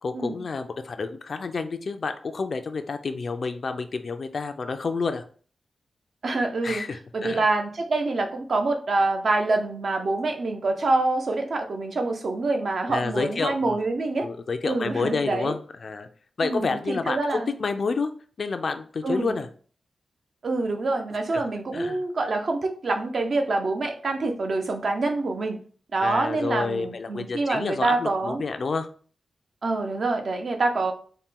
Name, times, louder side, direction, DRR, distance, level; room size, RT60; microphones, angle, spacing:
voice 1, 0.0-5.2 6.6-7.5 12.9-13.8 14.2-16.1 16.4-18.1 18.4-19.5 21.3-21.4 21.7-22.0 26.0-28.9, left 4 dB, 55° left, 8 dB, 0.4 m, -29 dB
voice 2, 6.2-6.8 7.1-14.3 14.6-15.5 16.4-17.5 19.0-19.4 20.4-25.6 25.9-28.4 29.6-30.9, right 3 dB, 55° right, 4 dB, 0.6 m, -26 dB
4.2 x 2.2 x 3.6 m, 0.43 s
wide cardioid pair, 105°, 0 cm